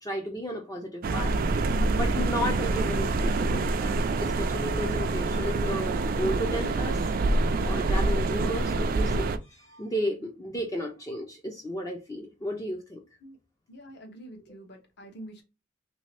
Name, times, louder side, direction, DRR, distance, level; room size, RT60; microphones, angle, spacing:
voice 1, 0.0-1.3 1.9-7.1 7.6-13.0, equal, 15° left, 0.4 m, -33 dB
sound 1, 1.0-9.4, right 2 dB, 45° right, 0.3 m, -26 dB
voice 2, 13.7-15.4, right 1 dB, 55° left, 0.9 m, -46 dB
3.2 x 2.7 x 3.2 m
head